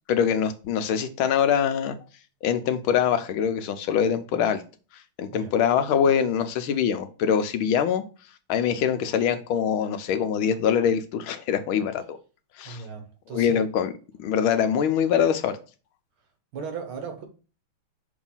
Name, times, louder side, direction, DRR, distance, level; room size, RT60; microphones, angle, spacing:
voice 1, 0.1-1.9 2.4-4.6 5.2-8.0 8.5-12.2 12.6-12.8 13.3-13.9 14.2-15.6, left 8 dB, 80° left, 1.5 m, -23 dB
voice 2, 12.7-13.7 16.5-17.3, right 5 dB, 75° right, 2.1 m, -36 dB
6.2 x 3.2 x 5.5 m
omnidirectional pair, 2.3 m